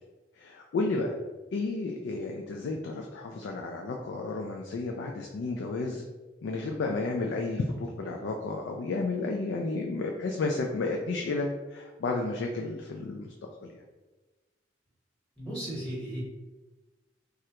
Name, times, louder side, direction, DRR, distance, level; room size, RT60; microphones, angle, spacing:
voice 1, 0.4-1.2 1.5-6.0 6.4-13.3 13.6-13.8, left 3 dB, 80° left, 1 dB, 0.3 m, -32 dB
voice 2, 15.4-16.2, right 1 dB, ahead, -8 dB, 0.9 m, -35 dB
3.2 x 2.4 x 2.8 m, 1.2 s
head